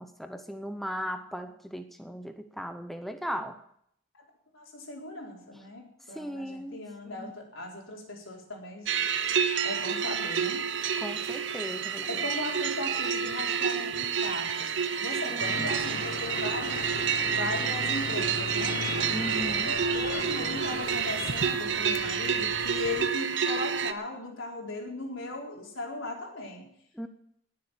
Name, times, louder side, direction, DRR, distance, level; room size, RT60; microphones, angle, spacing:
voice 1, 0.0-3.6 6.1-7.3 11.0-12.2 15.3-15.7 19.1-19.8 26.9-27.1, equal, ahead, 7 dB, 0.7 m, -37 dB
voice 2, 4.5-8.9 9.6-10.7 12.0-14.7 15.0-16.8 17.3-18.8 19.6-26.7, left 2 dB, 80° left, -1 dB, 4.2 m, -38 dB
sound 1, 8.9-23.9, right 7 dB, 65° right, 0.9 m, -29 dB
sound 2, 15.4-23.1, left 4 dB, 50° left, 0.7 m, -38 dB
19.5 x 7.6 x 7.3 m, 0.73 s
head